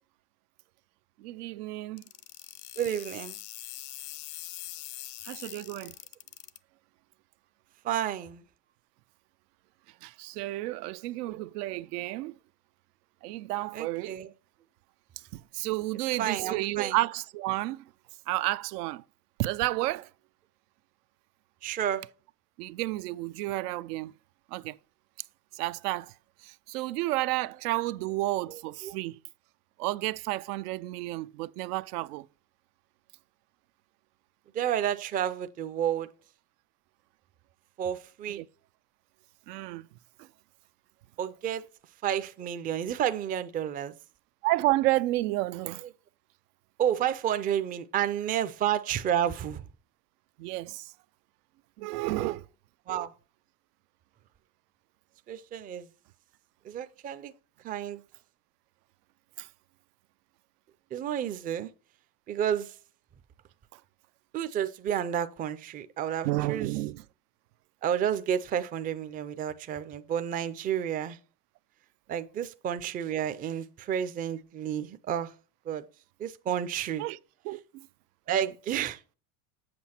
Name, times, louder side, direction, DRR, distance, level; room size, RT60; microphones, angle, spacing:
voice 1, 1.2-2.0 5.2-6.0 10.0-12.3 13.2-14.2 15.3-17.8 18.3-19.0 19.4-20.1 22.6-24.1 24.5-24.8 25.5-26.1 26.4-29.2 29.8-32.2 38.4-38.5 39.5-39.9 44.4-45.8 50.4-50.9 51.8-52.4 59.4-59.5 63.7-63.8 66.2-67.0 77.0-77.2 77.4-77.9, right 18 dB, 80° right, 0.5 m, -31 dB
sound 1, 2.0-6.6, left 16 dB, 50° left, 0.5 m, -43 dB
voice 2, 2.8-3.4 7.8-8.4 11.3-11.4 13.7-14.3 16.2-17.0 21.6-22.0 28.5-29.0 34.5-36.1 37.8-38.4 41.2-41.6 42.0-43.9 46.8-49.6 52.2-52.4 52.9-53.1 55.3-55.9 56.6-57.3 57.6-58.0 60.9-61.7 62.3-62.7 64.3-66.7 67.8-71.2 72.1-75.3 75.7-75.8 76.2-77.0 78.3-79.0, right 10 dB, 20° right, 0.4 m, -31 dB
7.7 x 5.7 x 4.3 m
supercardioid pair, 115°, 46 cm